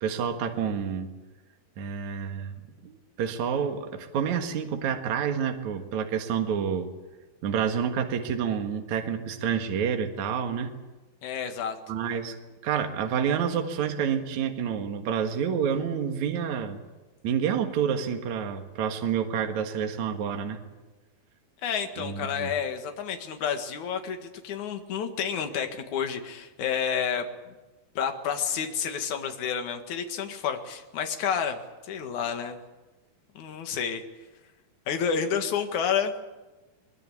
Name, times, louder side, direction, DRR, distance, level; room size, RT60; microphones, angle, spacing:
voice 1, 0.0-1.1 1.8-2.5 2.8-6.9 7.4-10.7 11.9-12.3 12.6-16.8 17.2-20.6 22.0-22.5, right 7 dB, 55° right, 5 dB, 2.7 m, -28 dB
voice 2, 11.2-11.8 21.6-24.2 24.4-27.5 27.9-32.6 33.3-34.0 34.9-36.1, left 7 dB, 55° left, 6 dB, 3.0 m, -30 dB
22.5 x 22.0 x 8.5 m, 1.1 s
omnidirectional pair, 4.4 m